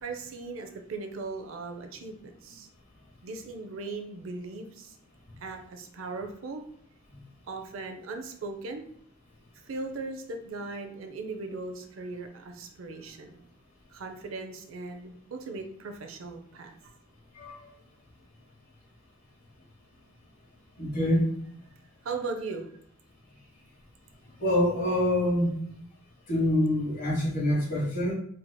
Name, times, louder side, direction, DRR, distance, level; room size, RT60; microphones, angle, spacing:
voice 1, 0.0-2.7 3.2-5.0 5.4-6.6 7.5-8.9 9.6-13.4 13.9-16.8 22.0-22.7, right 3 dB, 80° right, 5 dB, 0.5 m, -38 dB
voice 2, 17.3-17.7 20.8-21.3 24.4-25.5 26.3-28.1, left 1 dB, 45° left, -4 dB, 1.3 m, -25 dB
4.4 x 2.8 x 2.2 m, 0.65 s
head